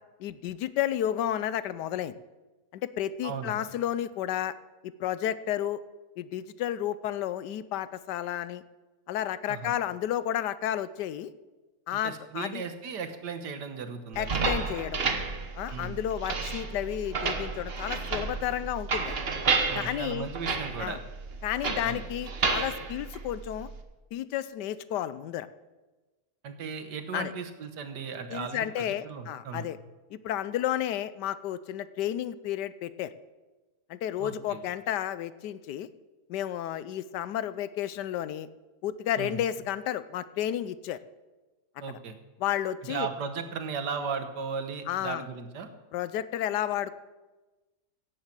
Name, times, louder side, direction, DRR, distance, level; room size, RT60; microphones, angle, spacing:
voice 1, 0.2-2.1 2.7-4.5 5.0-5.8 6.2-8.6 9.1-11.3 11.9-12.6 14.2-15.0 15.6-19.2 19.7-20.3 20.8-21.0 21.4-23.7 24.1-25.5 27.1-27.3 28.3-29.8 30.1-33.1 33.9-35.9 36.3-38.5 38.8-41.0 42.4-43.1 44.9-45.2 45.9-47.0, left 11 dB, 85° left, 15 dB, 1.2 m, -32 dB
voice 2, 3.2-3.7 9.5-9.7 11.9-14.5 15.7-16.0 19.7-21.0 21.8-22.0 26.4-29.7 34.2-34.6 39.2-39.4 41.8-42.2 42.8-45.7, right 5 dB, 80° right, 8 dB, 1.8 m, -36 dB
sound 1, 14.1-23.8, right 4 dB, 40° right, 1.2 m, -31 dB
16.5 x 7.3 x 7.4 m, 1.2 s
omnidirectional pair, 1.8 m